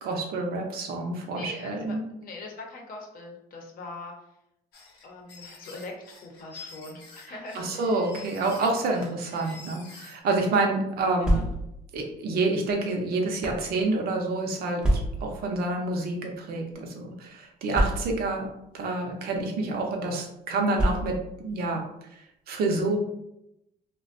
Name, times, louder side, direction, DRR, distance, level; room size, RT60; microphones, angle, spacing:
voice 1, 0.0-2.0 7.3-11.5 11.9-18.5 18.7-21.8 22.1-23.0, right 3 dB, 65° right, 1 dB, 0.6 m, -28 dB
voice 2, 1.3-1.9 2.2-4.1 5.0-7.8 9.4-9.6 11.2-11.4, left 3 dB, 55° left, 1 dB, 0.7 m, -42 dB
sound 1, 4.7-10.2, left 4 dB, 85° left, 0.8 m, -47 dB
sound 2, 11.0-11.9 12.7-13.7 14.8-15.4 16.3-16.5 16.7-16.8 17.7-18.4 19.3-19.5 20.7-21.4, right 1 dB, 5° right, 0.5 m, -27 dB
2.4 x 2.1 x 2.4 m, 0.83 s
cardioid pair, 110°, 17 cm